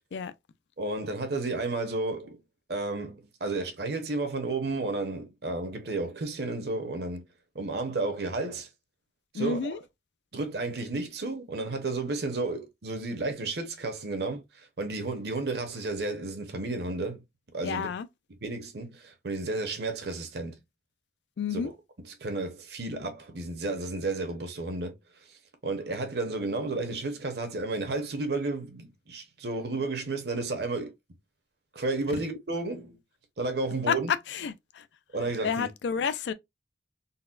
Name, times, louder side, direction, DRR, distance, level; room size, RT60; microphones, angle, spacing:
voice 1, 0.8-2.4 2.7-7.2 7.5-8.7 9.3-9.7 10.3-17.2 17.5-17.9 18.4-20.5 21.5-21.6 22.2-25.0 25.6-30.9 31.7-33.0 33.4-34.1 35.1-35.7, right 2 dB, 60° right, 0.8 m, -32 dB
voice 2, 9.3-9.8 17.6-18.1 21.4-21.7 33.9-34.0 34.3-34.8 35.4-36.3, left 6 dB, 70° left, 0.3 m, -30 dB
4.0 x 2.1 x 2.4 m
head